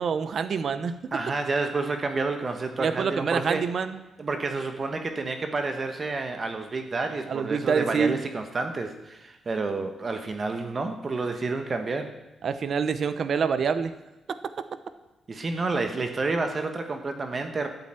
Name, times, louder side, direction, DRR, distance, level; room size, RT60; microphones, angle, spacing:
voice 1, 0.0-0.9 2.8-4.0 7.3-8.1 12.4-13.9 14.3-14.4, right 6 dB, 45° right, 12 dB, 0.8 m, -26 dB
voice 2, 1.1-3.6 4.2-12.1 15.3-17.7, right 3 dB, 30° right, 6 dB, 1.1 m, -29 dB
13.0 x 8.0 x 8.9 m, 0.99 s
wide cardioid pair, 165°, 0 cm